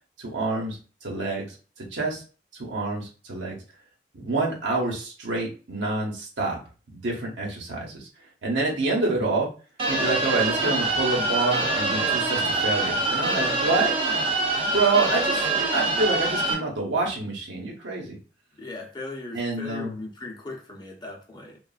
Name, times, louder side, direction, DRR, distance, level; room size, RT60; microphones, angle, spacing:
voice 1, 0.2-1.5 1.8-2.2 2.6-3.6 4.1-6.6 6.9-8.1 8.4-9.5 9.9-13.9 14.7-18.2 19.3-19.9, right 3 dB, 85° right, -2 dB, 1.0 m, -27 dB
sound 1, 9.8-16.5, right 3 dB, 30° right, 0.5 m, -24 dB
voice 2, 18.6-21.6, left 2 dB, 25° left, -1 dB, 0.7 m, -38 dB
3.1 x 2.3 x 2.4 m, 0.36 s
head